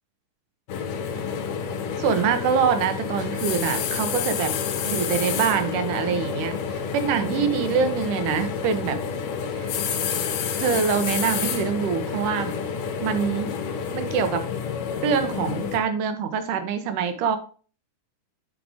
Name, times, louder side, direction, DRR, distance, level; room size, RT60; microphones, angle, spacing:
sound 1, 0.7-15.8, left 6 dB, 85° left, 2.6 m, -29 dB
voice 1, 2.0-4.5 4.8-9.0 9.5-9.7 10.6-12.5 13.0-13.5 13.9-14.4 15.0-17.4, right 7 dB, 80° right, 9 dB, 2.4 m, -25 dB
8.5 x 5.2 x 3.4 m, 0.39 s
omnidirectional pair, 3.7 m